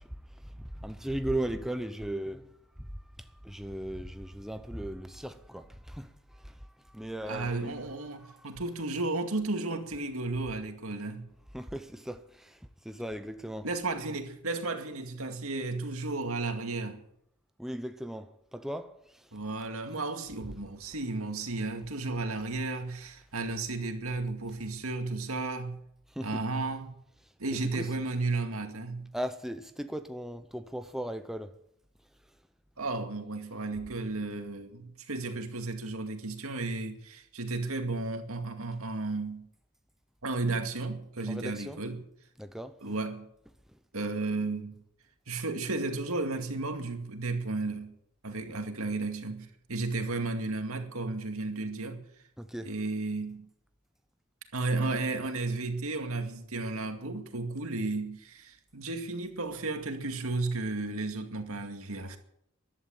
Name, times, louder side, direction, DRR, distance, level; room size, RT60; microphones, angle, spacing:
voice 1, 0.0-2.9 3.2-8.6 11.5-13.7 17.6-19.4 26.1-26.5 27.5-27.9 29.1-31.6 32.2-32.4 41.3-41.8 42.4-42.8 43.7-43.8 52.4-52.7, right 1 dB, ahead, 0.7 m, -38 dB
voice 2, 7.2-11.3 13.6-17.0 19.3-25.8 26.2-26.9 27.4-29.1 32.8-39.5 40.2-42.0 42.8-43.3 43.9-44.8 45.3-48.0 48.2-52.0 52.7-53.5 54.5-62.2, right 3 dB, 80° right, 2.2 m, -33 dB
14.5 x 11.5 x 8.8 m
head